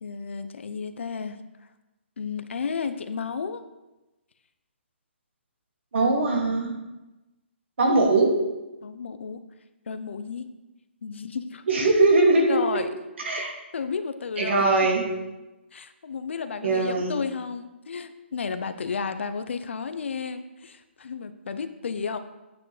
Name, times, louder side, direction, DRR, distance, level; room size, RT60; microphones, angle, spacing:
voice 1, 0.0-1.4 2.2-3.6 8.8-9.4 9.9-10.5 11.0-11.6 12.5-12.9 13.7-14.6 15.7-22.2, left 5 dB, 70° left, 10 dB, 0.7 m, -32 dB
voice 2, 5.9-6.7 7.8-8.3 11.7-12.6 13.2-13.5 14.4-15.0 16.6-17.1, right 2 dB, 65° right, 0 dB, 2.3 m, -21 dB
9.1 x 8.3 x 3.3 m, 1.0 s
hypercardioid pair, 140°, 7 cm